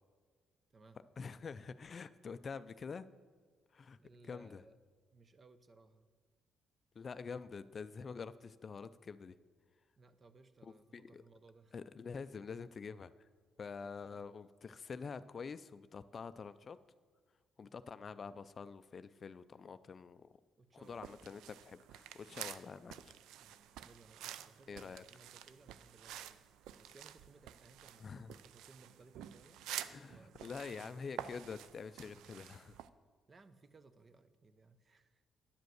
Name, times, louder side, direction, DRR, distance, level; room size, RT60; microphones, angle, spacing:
voice 1, 1.2-3.1 3.7-4.0 4.3-4.6 7.0-9.3 10.6-11.2 11.7-13.3 13.6-16.8 17.6-20.3 20.7-23.1 24.7-25.0 28.0-28.4 29.9-32.8, left 5 dB, 45° left, 14 dB, 0.3 m, -47 dB
voice 2, 4.0-4.8 5.1-6.1 10.0-11.8 13.8-14.3 20.6-21.2 23.4-26.5 26.8-31.4 33.3-35.2, right 3 dB, 35° right, 13 dB, 0.6 m, -63 dB
sound 1, 20.8-32.9, right 11 dB, 90° right, 0.3 m, -50 dB
10.0 x 5.1 x 7.8 m, 1.5 s
cardioid pair, 90°, 0 cm